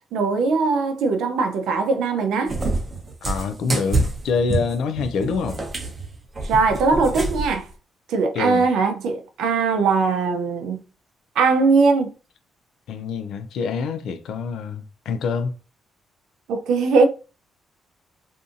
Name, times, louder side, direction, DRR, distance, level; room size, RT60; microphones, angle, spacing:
voice 1, 0.1-2.5 6.4-7.6 8.1-10.8 11.4-12.1 16.5-17.1, right 4 dB, 80° right, 0.5 m, -20 dB
Cat, 2.5-7.6, right 2 dB, 40° right, 0.7 m, -27 dB
voice 2, 3.2-5.6 8.3-8.7 12.9-15.6, left 5 dB, 75° left, 0.3 m, -26 dB
2.6 x 2.5 x 2.5 m
supercardioid pair, 55°, 0 cm